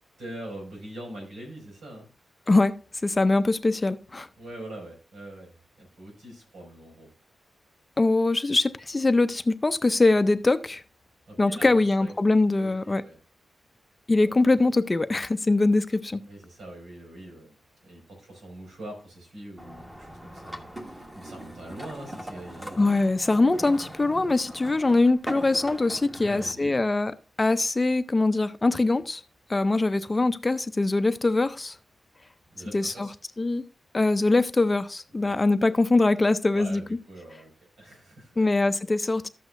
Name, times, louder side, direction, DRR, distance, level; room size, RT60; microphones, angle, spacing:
voice 1, 0.2-2.1 4.4-5.5 5.8-7.1 11.3-12.1 12.6-13.2 14.2-14.3 16.3-17.6 17.8-22.9 26.1-26.8 32.5-33.1 35.2-35.4 36.5-38.5, right 1 dB, 90° right, 5.5 m, -43 dB
voice 2, 3.0-4.3 8.0-10.8 11.4-13.0 14.1-16.2 22.8-27.1 27.4-29.2 29.5-31.8 32.7-33.1 33.4-33.6 33.9-36.8 38.4-39.3, left 2 dB, 25° left, 0.5 m, -22 dB
sound 1, 19.6-26.5, right 1 dB, 20° right, 1.4 m, -40 dB
12.5 x 8.1 x 2.5 m
wide cardioid pair, 120°, 0 cm